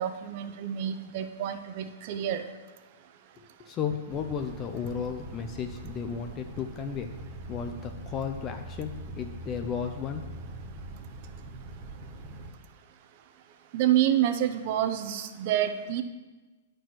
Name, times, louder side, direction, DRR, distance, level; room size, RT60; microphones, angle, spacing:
voice 1, 0.0-2.4 13.7-16.0, right 11 dB, 45° right, 9 dB, 0.7 m, -28 dB
voice 2, 3.4-7.1 7.5-10.3, left 7 dB, 25° left, 6 dB, 0.5 m, -34 dB
sound 1, 4.1-12.5, right 2 dB, 20° right, 1.5 m, -42 dB
9.0 x 4.5 x 6.1 m, 1.3 s
hypercardioid pair, 145°, 0 cm